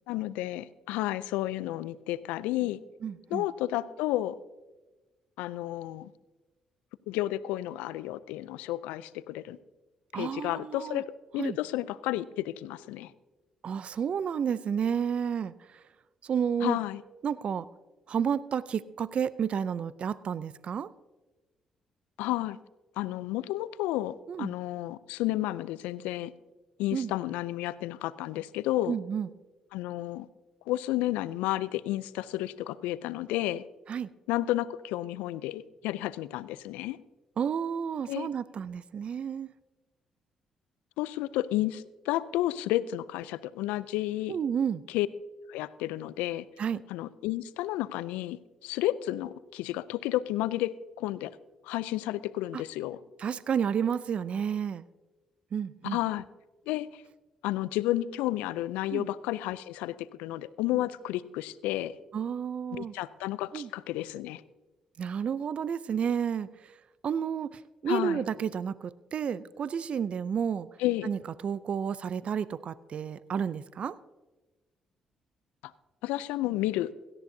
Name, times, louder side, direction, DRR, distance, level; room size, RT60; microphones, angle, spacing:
voice 1, 0.1-2.8 3.3-4.4 5.4-6.1 7.1-9.6 10.1-13.1 16.6-17.0 22.2-22.6 23.0-26.3 26.8-29.0 29.7-30.3 30.7-33.6 34.3-37.0 38.1-38.3 41.0-44.4 44.9-45.1 45.5-46.5 46.9-51.3 51.6-53.0 55.8-56.3 56.7-57.0 57.4-62.0 62.7-64.4 67.9-68.3 70.8-71.1 75.6-75.7 76.0-76.9, left 15 dB, 80° left, 18 dB, 0.4 m, -31 dB
voice 2, 3.0-3.4 10.1-11.0 11.4-11.6 13.6-15.8 16.2-16.8 17.2-17.7 18.1-20.9 24.3-24.5 26.9-27.1 28.9-29.3 33.9-34.1 37.4-39.5 44.3-44.8 46.6-46.8 52.5-52.6 53.2-54.8 55.5-56.0 58.9-59.1 62.1-62.9 63.5-63.7 65.0-66.7 67.0-70.7 71.0-74.0, right 7 dB, 55° right, 18 dB, 0.4 m, -31 dB
17.0 x 13.0 x 2.7 m, 1.1 s
hypercardioid pair, 50°, 2 cm